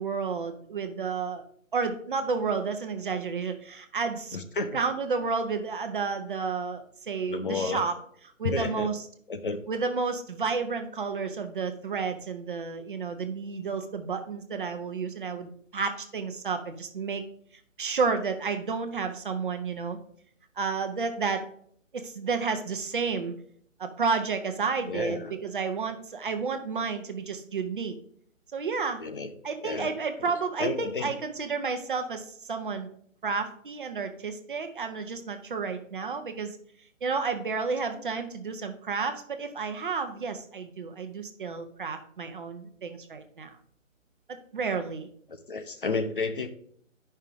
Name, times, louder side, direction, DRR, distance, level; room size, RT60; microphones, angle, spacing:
voice 1, 0.0-1.4 1.7-4.4 4.7-7.9 8.4-9.0 9.7-17.2 17.8-20.0 20.6-21.4 21.9-23.3 23.8-27.9 28.5-29.0 29.4-32.9 33.2-36.6 37.0-43.6 44.5-45.1, right 5 dB, 40° right, 7 dB, 0.9 m, -31 dB
voice 2, 4.3-4.8 7.3-7.8 8.4-8.9 9.3-9.6 24.9-25.3 29.0-29.3 29.6-30.3 30.6-31.2 45.5-46.5, left 3 dB, 40° left, 8 dB, 0.7 m, -31 dB
10.0 x 5.6 x 3.6 m, 0.62 s
figure-of-eight pair, 155°, 39 cm